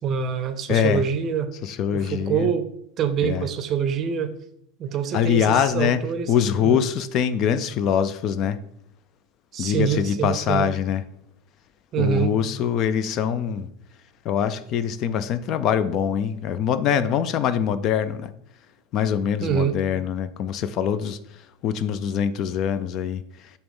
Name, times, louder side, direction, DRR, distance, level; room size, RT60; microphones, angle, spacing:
voice 1, 0.0-1.5 1.9-2.7 3.0-4.4 4.8-6.8 9.5-10.7 11.9-12.3 19.4-19.8, right 7 dB, 30° right, 10 dB, 0.6 m, -25 dB
voice 2, 0.7-1.0 1.6-2.5 3.2-3.5 5.1-6.0 6.3-8.6 9.6-11.0 12.0-13.7 14.2-18.3 18.9-23.5, left 8 dB, 40° left, 13 dB, 0.4 m, -23 dB
7.0 x 3.0 x 5.4 m, 0.71 s
supercardioid pair, 155°, 0 cm